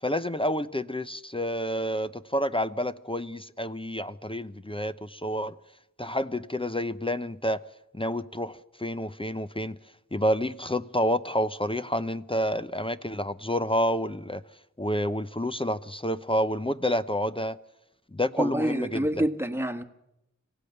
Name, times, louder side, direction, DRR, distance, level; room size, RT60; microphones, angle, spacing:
voice 1, 0.0-5.5 6.0-7.6 7.9-9.8 10.1-14.4 14.8-17.6 18.1-19.2, equal, 15° left, 0.7 m, -29 dB
voice 2, 18.4-19.8, right 1 dB, 5° right, 1.5 m, -27 dB
26.0 x 16.5 x 6.7 m
wide cardioid pair, 50°, 31 cm